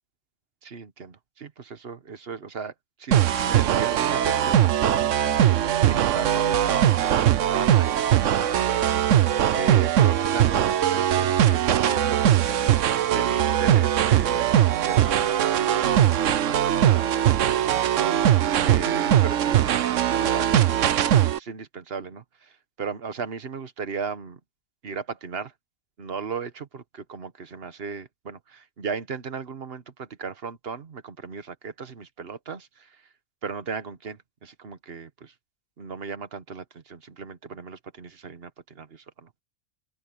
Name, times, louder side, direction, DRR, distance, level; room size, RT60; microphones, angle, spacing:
voice 1, 0.6-2.7 3.0-3.2 3.5-5.2 5.8-8.9 9.5-12.4 13.1-14.5 14.8-17.8 18.6-24.4 24.8-25.5 26.0-33.1 33.4-35.3 35.8-39.4, right 5 dB, 55° right, 1.4 m, -36 dB
sound 1, 3.1-21.4, right 11 dB, 80° right, 1.1 m, -21 dB
open air
omnidirectional pair, 1.3 m